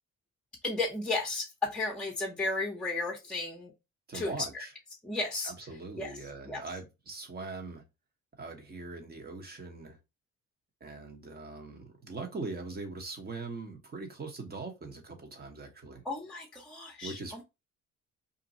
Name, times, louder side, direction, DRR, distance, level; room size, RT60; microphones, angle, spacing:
voice 1, 0.6-3.7 4.1-4.6 5.0-5.5 6.0-6.1 6.5-6.6 16.0-17.4, left 3 dB, 5° left, 0.8 m, -34 dB
voice 2, 4.1-4.7 5.4-7.8 8.4-10.0 10.8-16.0 17.0-17.4, right 3 dB, 30° right, 1.0 m, -41 dB
2.6 x 2.2 x 3.9 m
cardioid pair, 90°, 30 cm